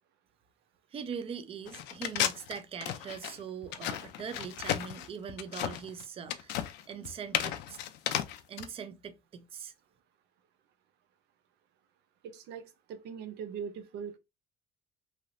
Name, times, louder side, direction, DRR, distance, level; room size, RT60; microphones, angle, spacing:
voice 1, 0.9-7.8 8.5-9.7, right 7 dB, 35° right, 0.5 m, -42 dB
sound 1, 1.7-8.7, left 12 dB, 85° left, 0.5 m, -34 dB
voice 2, 12.2-14.2, right 7 dB, 85° right, 0.5 m, -41 dB
3.2 x 2.8 x 2.4 m
cardioid pair, 110°, 17 cm